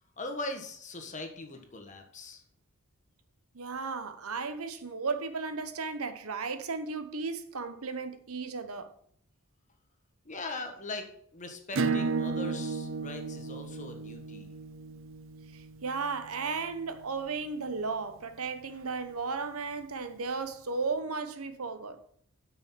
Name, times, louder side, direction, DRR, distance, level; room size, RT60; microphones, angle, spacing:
voice 1, 0.2-2.4 10.2-14.5, left 2 dB, 35° left, 1.4 m, -40 dB
voice 2, 3.5-8.9 15.5-22.0, right 4 dB, 80° right, 1.0 m, -35 dB
Acoustic guitar / Strum, 11.7-17.0, right 4 dB, 60° right, 0.5 m, -34 dB
8.6 x 6.2 x 5.8 m
head